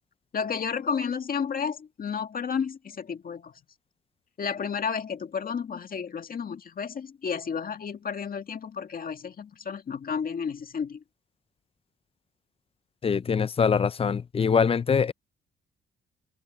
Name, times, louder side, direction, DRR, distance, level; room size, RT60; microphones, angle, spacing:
voice 1, 0.3-3.5 4.4-11.0, left 6 dB, 45° left, 1.9 m, -32 dB
voice 2, 13.0-15.1, left 6 dB, 30° left, 0.6 m, -23 dB
cardioid pair, 90°, 20 cm